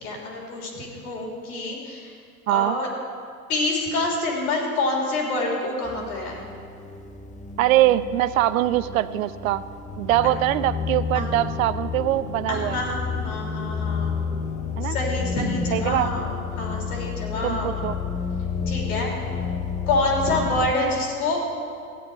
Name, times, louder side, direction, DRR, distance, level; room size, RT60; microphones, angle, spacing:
voice 1, 0.0-2.2 2.5-2.9 3.5-6.4 11.1-11.3 12.5-14.1 14.8-16.3 16.6-17.7 18.7-19.1 19.9-21.4, left 2 dB, 70° left, -1 dB, 3.3 m, -27 dB
voice 2, 2.5-2.8 7.6-9.6 10.0-12.8 14.8-15.0 15.7-16.1 17.4-17.9, right 14 dB, 65° right, 15 dB, 0.5 m, -22 dB
sound 1, 5.8-20.7, left 6 dB, 15° left, 0.7 m, -30 dB
14.0 x 9.3 x 4.8 m, 2.3 s
hypercardioid pair, 100°, 45 cm